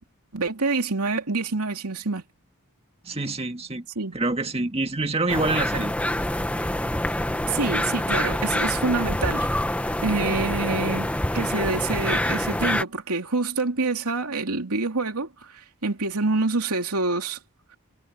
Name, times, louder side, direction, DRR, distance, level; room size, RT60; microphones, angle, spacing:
voice 1, 0.3-2.2 3.9-4.1 7.4-9.5 10.0-17.4, right 3 dB, 90° right, 2.8 m, -26 dB
voice 2, 3.0-3.9 4.1-5.9, right 2 dB, 25° right, 1.8 m, -26 dB
sound 1, 5.3-12.8, left 1 dB, 5° left, 1.0 m, -26 dB
head